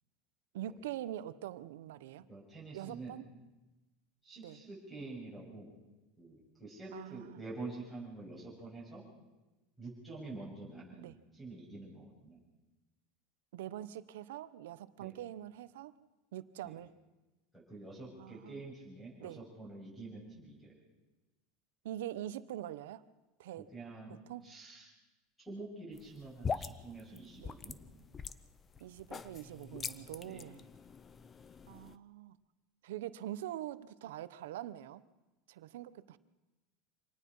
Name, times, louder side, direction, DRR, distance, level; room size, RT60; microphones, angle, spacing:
voice 1, 0.5-2.3 2.7-3.3 4.4-4.6 6.9-7.4 11.0-11.1 13.5-15.9 16.3-16.9 18.2-18.6 19.2-19.4 21.8-23.1 23.4-23.7 24.1-24.5 27.4-27.5 28.8-30.7 31.7-32.4 32.8-35.0 35.5-36.2, right 12 dB, 90° right, 15 dB, 0.9 m, -44 dB
voice 2, 2.3-3.2 4.2-5.7 6.2-9.0 9.8-12.4 15.0-15.1 16.6-16.7 17.5-20.7 23.6-24.2 24.4-24.9 25.5-27.8 30.3-30.5, right 3 dB, 5° left, -3 dB, 7.0 m, -47 dB
sound 1, 25.9-32.0, left 5 dB, 20° left, 0.6 m, -43 dB
25.5 x 19.0 x 5.6 m, 1.1 s
supercardioid pair, 150°, 0 cm